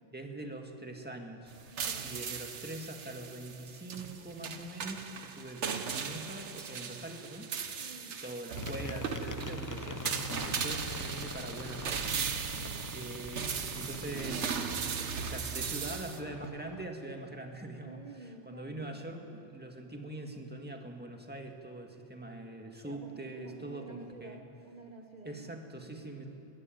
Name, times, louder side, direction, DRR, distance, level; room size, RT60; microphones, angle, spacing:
voice 1, 0.1-1.5 2.0-12.6 12.9-24.4 25.2-26.3, right 2 dB, 10° right, 3 dB, 1.8 m, -43 dB
sound 1, 1.5-16.2, right 6 dB, 80° right, 1.4 m, -37 dB
voice 2, 1.7-2.3 7.8-8.2 12.5-13.0 17.8-18.9 22.8-25.5 25.9-26.1, right 2 dB, 40° right, 3 dB, 1.2 m, -50 dB
sound 2, 8.6-16.8, left 4 dB, 30° left, 0.3 m, -45 dB
21.5 x 16.5 x 9.3 m, 2.9 s
omnidirectional pair, 1.2 m